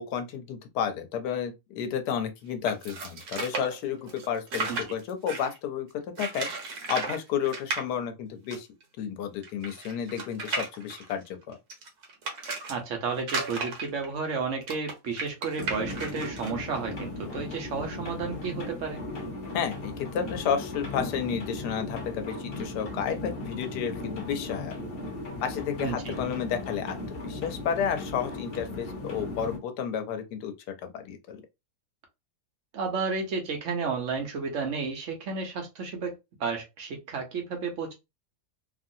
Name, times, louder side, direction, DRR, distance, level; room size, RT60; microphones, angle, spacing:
voice 1, 0.0-5.9 6.2-6.5 6.9-8.7 9.0-11.6 19.5-24.7 25.4-27.0 27.2-30.5 30.8-31.4, left 8 dB, 75° left, 1.1 m, -31 dB
sound 1, 2.7-5.6 6.2-7.2 7.4-7.8 8.5-8.6 8.8-8.9 9.4-12.7 13.2-16.5, right 3 dB, 70° right, 1.4 m, -34 dB
voice 2, 12.7-19.0 25.8-26.1 32.7-37.9, right 4 dB, 55° right, 1.0 m, -32 dB
sound 2, 15.6-29.6, left 2 dB, 50° left, 0.8 m, -37 dB
2.9 x 2.5 x 2.6 m
omnidirectional pair, 1.8 m